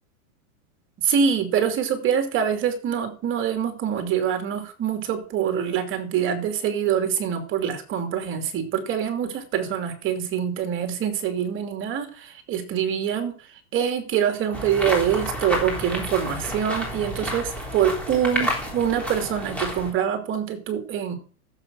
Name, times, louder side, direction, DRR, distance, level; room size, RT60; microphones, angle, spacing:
voice 1, 1.0-13.3 13.7-21.1, right 8 dB, 25° right, 7 dB, 2.7 m, -25 dB
sound 1, 14.5-19.9, equal, 5° left, 3.6 m, -30 dB
14.5 x 7.5 x 6.2 m, 0.41 s
supercardioid pair, 145°, 44 cm